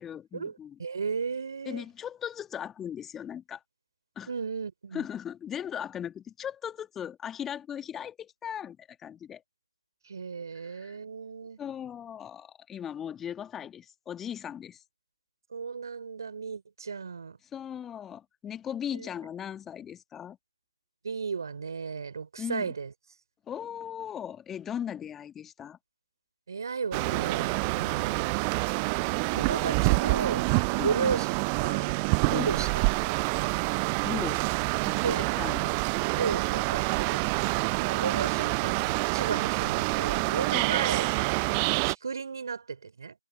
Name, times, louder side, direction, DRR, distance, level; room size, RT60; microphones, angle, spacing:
voice 1, 0.0-0.8 1.7-3.6 4.2-4.3 4.9-9.4 10.6-11.0 11.6-14.8 17.4-20.4 22.4-22.7 23.5-25.8 30.7-31.2 32.3-32.6 34.0-34.5 34.9-35.8 40.5-40.8, left 9 dB, 5° left, 2.0 m, -38 dB
voice 2, 0.8-1.9 4.3-5.0 10.1-11.6 15.5-17.4 18.9-19.1 21.0-22.9 26.5-28.3 29.3-30.5 30.8-31.3 31.6-32.0 32.3-33.6 35.0-35.2 36.2-37.2 37.8-43.1, right 5 dB, 45° right, 5.0 m, -34 dB
sound 1, 26.9-41.9, right 34 dB, 15° right, 0.6 m, -27 dB
figure-of-eight pair, 155°, 3 cm